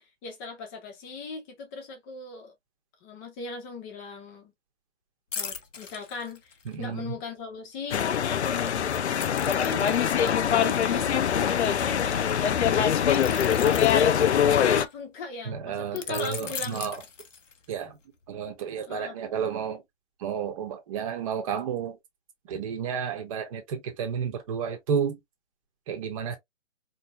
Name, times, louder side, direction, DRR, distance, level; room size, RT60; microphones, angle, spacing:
voice 1, 0.0-2.5 3.0-4.5 5.3-11.1 11.7-12.6 13.1-13.7 14.3-16.8 18.9-19.2, left 4 dB, 15° left, 1.0 m, -39 dB
sound 1, 5.3-6.9 9.2-11.9 13.1-14.9 16.0-17.8 18.2-18.4, left 6 dB, 85° left, 1.0 m, -40 dB
voice 2, 6.6-7.1 15.4-17.0 17.7-18.0 18.3-19.8 20.2-22.0 22.5-25.2 25.9-26.4, right 7 dB, 30° right, 1.2 m, -31 dB
sound 2, 7.9-14.9, left 8 dB, 65° left, 0.6 m, -23 dB
4.6 x 3.1 x 2.3 m
hypercardioid pair, 150°, 36 cm